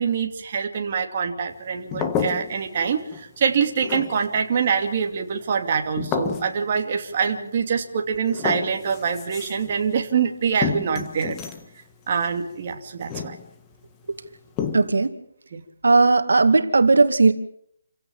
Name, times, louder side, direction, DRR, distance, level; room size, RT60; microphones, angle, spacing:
voice 1, 0.0-11.4 12.1-13.4 15.5-15.6, right 6 dB, 35° right, 3 dB, 2.7 m, -25 dB
sound 1, 1.9-2.8 3.1-3.5 3.8-4.4 6.0-6.6 7.8-7.9 8.1-9.8 10.6-11.7 13.0-13.7 14.6-15.1, left 7 dB, 15° left, 1.6 m, -30 dB
voice 2, 14.7-15.1 15.8-17.3, right 3 dB, 85° right, 8 dB, 2.4 m, -16 dB
29.0 x 16.5 x 7.4 m, 0.69 s
hypercardioid pair, 170°, 0 cm